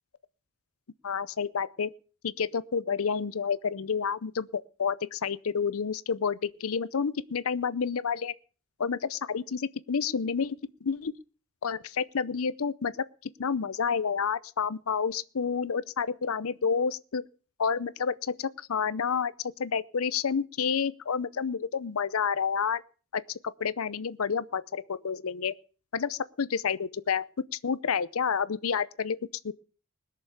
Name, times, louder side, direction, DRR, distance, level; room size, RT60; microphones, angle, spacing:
voice 1, 1.0-1.9 2.2-8.3 8.8-11.1 11.6-12.9 13.4-17.2 17.6-19.3 19.6-22.8 23.1-25.5 25.9-29.2 29.4-29.5, left 6 dB, 75° left, 0.6 m, -29 dB
20.5 x 6.8 x 6.6 m
head